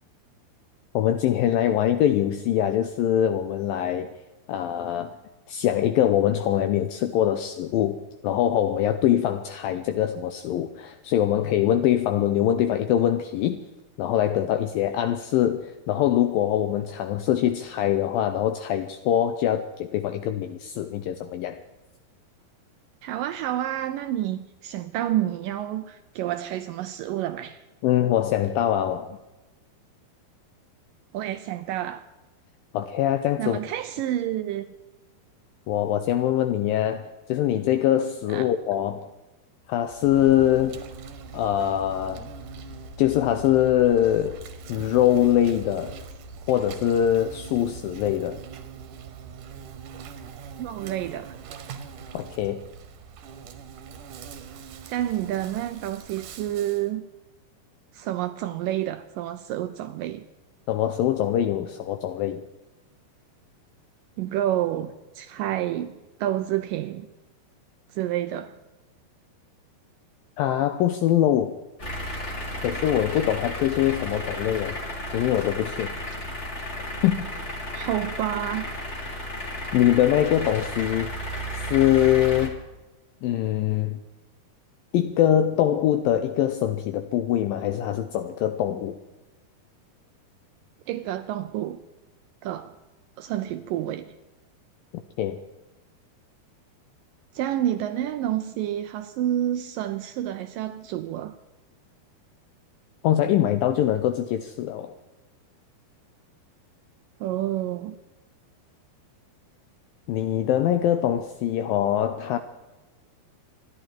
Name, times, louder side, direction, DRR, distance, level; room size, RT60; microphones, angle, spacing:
voice 1, 0.9-4.1 4.5-5.2 5.5-8.0 8.2-13.6 14.0-21.6 27.8-29.2 32.7-33.6 35.7-39.1 39.7-40.8 41.3-42.3 43.0-44.4 44.7-46.0 46.5-48.4 52.1-52.6 60.7-62.4 70.4-71.5 72.6-74.8 75.1-75.9 77.0-77.2 79.7-81.1 81.5-82.6 83.2-84.0 84.9-89.0 95.2-95.4 103.0-104.9 110.1-112.4, left 11 dB, 80° left, 2.2 m, -23 dB
voice 2, 23.0-27.6 31.1-32.0 33.4-34.7 38.3-38.5 50.6-51.4 54.9-57.1 57.9-60.2 64.2-67.1 67.9-68.6 77.7-78.7 90.9-91.8 92.4-92.7 93.2-94.1 97.3-101.4 107.2-108.0, right 12 dB, 85° right, 1.9 m, -29 dB
Insect, 39.8-56.9, right 4 dB, 65° right, 2.5 m, -42 dB
sound 1, 71.8-82.5, left 1 dB, 25° left, 1.8 m, -33 dB
26.5 x 11.5 x 4.5 m
omnidirectional pair, 4.7 m